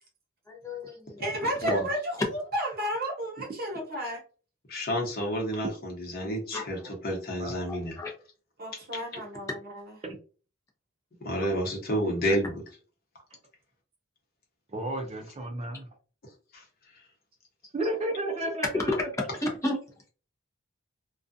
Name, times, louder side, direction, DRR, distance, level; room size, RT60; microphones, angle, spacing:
voice 1, 0.5-1.2 6.5-6.6 7.7-8.1 19.4-19.8, left 1 dB, 15° left, -2 dB, 0.7 m, -33 dB
voice 2, 1.2-4.2 8.6-10.0, equal, 50° right, -1 dB, 1.0 m, -32 dB
voice 3, 4.7-8.0 8.9-9.0 11.2-12.6 16.5-16.6, equal, 50° left, -1 dB, 1.0 m, -30 dB
voice 4, 14.7-15.9 17.7-19.1, right 1 dB, 30° right, 2 dB, 0.4 m, -32 dB
2.3 x 2.3 x 2.5 m, 0.37 s
head